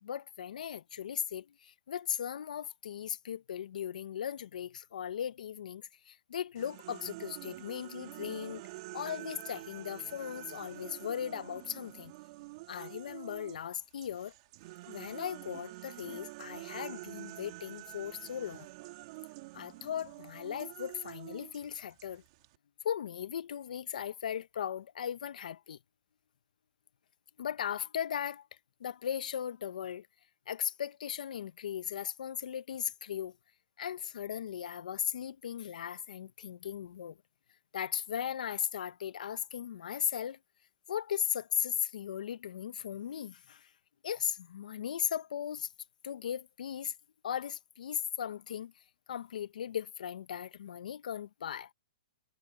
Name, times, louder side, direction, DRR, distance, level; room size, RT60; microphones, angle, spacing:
voice 1, 0.0-8.6 8.9-12.1 12.7-14.3 14.9-18.7 19.5-22.2 22.8-25.8 27.4-28.4 28.8-30.1 30.5-33.3 33.8-37.2 37.7-40.4 40.9-43.6 44.0-45.7 46.0-46.9 47.2-48.7 49.1-51.7, left 9 dB, 70° left, 1.4 m, -37 dB
sound 1, 6.6-13.6 14.0-22.6, right 21 dB, 40° right, 3.4 m, -47 dB
hypercardioid pair, 145°, 4 cm